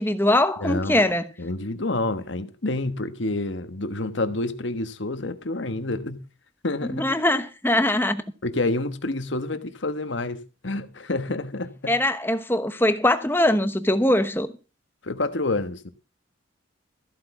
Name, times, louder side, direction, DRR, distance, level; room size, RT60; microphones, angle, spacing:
voice 1, 0.0-1.3 6.9-8.2 11.9-14.5, left 1 dB, 10° left, 1.0 m, -22 dB
voice 2, 0.6-1.0 1.4-6.2 6.6-7.1 8.4-12.0 15.0-15.9, left 2 dB, 70° left, 1.4 m, -28 dB
14.5 x 8.1 x 5.9 m
head